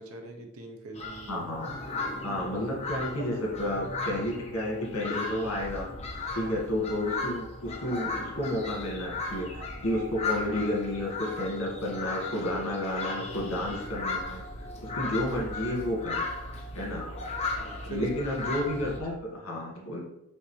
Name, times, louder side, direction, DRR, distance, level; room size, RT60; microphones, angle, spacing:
voice 1, 0.0-1.4 3.2-3.4 6.4-6.6 17.6-18.1 18.6-18.7, right 2 dB, 70° right, 3 dB, 0.8 m, -41 dB
sound 1, 0.9-19.0, left 3 dB, 30° left, 1.1 m, -36 dB
voice 2, 1.3-1.7 2.2-5.9 6.3-16.2 16.8-17.0 17.9-20.0, left 1 dB, 70° left, -3 dB, 1.8 m, -31 dB
9.9 x 3.5 x 3.2 m, 0.87 s
head